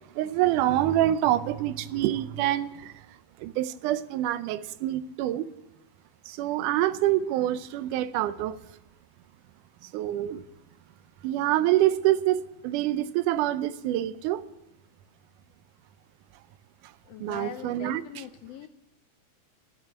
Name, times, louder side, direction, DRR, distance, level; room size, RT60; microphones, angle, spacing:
voice 1, 0.2-3.0 3.4-5.5 6.3-8.6 9.9-10.4 11.2-14.4 17.2-18.2, right 13 dB, 85° right, 2.2 m, -26 dB
voice 2, 17.1-18.7, left 11 dB, 90° left, 1.4 m, -41 dB
13.5 x 11.0 x 7.7 m
omnidirectional pair, 3.6 m